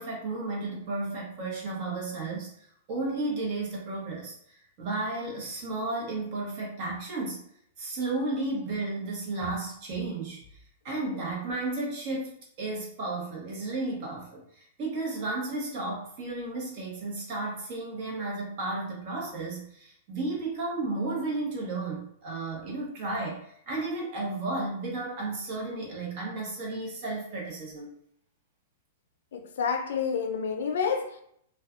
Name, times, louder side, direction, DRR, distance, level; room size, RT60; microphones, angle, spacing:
voice 1, 0.0-2.5 2.9-7.4 7.8-10.4 10.8-27.9, right 2 dB, 45° right, 1.0 m, -33 dB
voice 2, 29.3-31.2, left 6 dB, 75° left, 0.4 m, -29 dB
2.4 x 2.2 x 2.4 m
hypercardioid pair, 145°, 0 cm